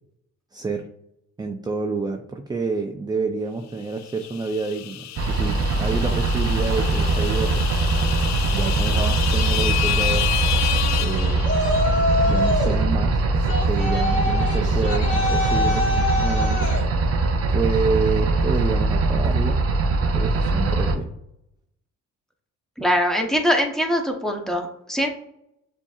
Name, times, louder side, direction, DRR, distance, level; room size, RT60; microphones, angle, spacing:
voice 1, 0.5-0.9 1.4-7.7 8.5-10.3 11.0-11.5 12.2-16.7 17.5-19.6 20.1-21.1, right 4 dB, 15° right, 4 dB, 0.4 m, -28 dB
sound 1, 4.0-12.0, left 13 dB, 65° left, 0.4 m, -29 dB
sound 2, 5.2-20.9, right 2 dB, 50° right, 0.7 m, -22 dB
Yell, 11.4-12.8 13.5-16.8, left 2 dB, 40° left, 1.5 m, -24 dB
voice 2, 22.8-25.1, equal, ahead, 2 dB, 0.9 m, -22 dB
6.9 x 2.7 x 2.4 m, 0.79 s
cardioid pair, 90°, 30 cm